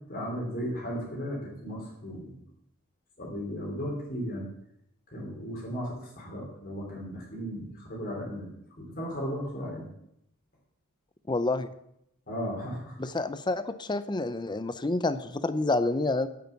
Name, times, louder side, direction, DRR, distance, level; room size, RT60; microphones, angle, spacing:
voice 1, 0.1-2.4 3.2-4.5 5.1-9.9 12.3-13.0, equal, 45° left, -2 dB, 3.4 m, -35 dB
voice 2, 11.3-11.7 13.0-16.3, left 2 dB, 20° left, 13 dB, 0.6 m, -28 dB
9.8 x 8.6 x 7.1 m, 0.76 s
head